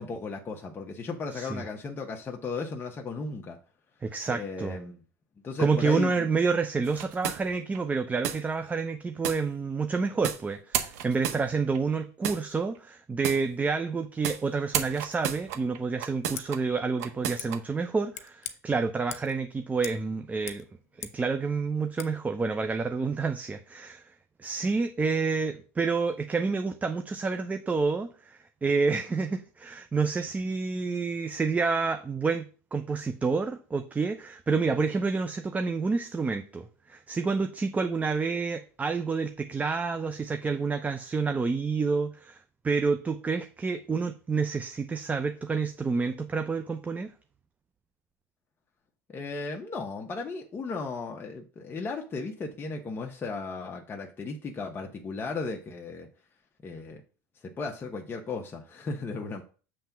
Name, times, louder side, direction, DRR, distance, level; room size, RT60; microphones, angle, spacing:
voice 1, 0.0-3.6 4.3-5.0 5.4-6.3 49.1-56.1 56.6-57.0 57.4-59.4, left 4 dB, 25° left, 1.0 m, -35 dB
voice 2, 1.3-1.6 4.0-4.8 5.6-20.6 21.0-24.1 24.4-47.1, right 4 dB, 20° right, 0.6 m, -29 dB
sound 1, 6.8-7.8 8.2-8.4 9.2-9.4 10.2-10.4 10.7-11.8 12.2-12.4 13.2-13.4 14.2-14.4 14.7-16.6 17.0-17.6, right 10 dB, 80° right, 1.0 m, -31 dB
Scissors, 16.2-16.5 17.4-17.5 18.1-18.5 19.1-19.4 19.8-20.0 20.3-21.2 22.0-22.1, left 10 dB, 85° left, 0.9 m, -41 dB
7.5 x 3.4 x 5.8 m
supercardioid pair, 105°, 8 cm